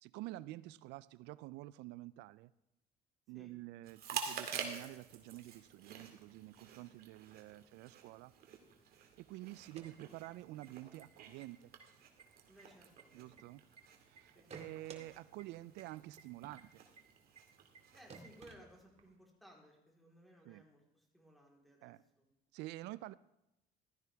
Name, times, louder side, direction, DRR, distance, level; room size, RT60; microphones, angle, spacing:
voice 1, 0.0-2.5 3.3-8.3 9.2-11.7 13.1-13.6 14.0-16.8 20.5-20.6 21.8-22.0 22.5-23.1, right 17 dB, 90° right, 18 dB, 0.4 m, -49 dB
Chewing mastication, 3.8-18.5, right 7 dB, 65° right, 2.2 m, -49 dB
sound 1, 9.6-10.7 11.0-11.1 11.4-11.8 12.2-13.8 14.2-15.0 15.4-15.5 15.8-15.9 16.2-16.3 16.6-16.7 17.0-17.1 17.3-17.4 17.7-17.8 18.1-19.1, right 5 dB, 40° right, 2.0 m, -55 dB
voice 2, 12.5-13.3 14.3-14.7 17.9-22.3, equal, ahead, -2 dB, 3.9 m, -61 dB
15.5 x 12.5 x 3.5 m, 0.90 s
cardioid pair, 110°, 17 cm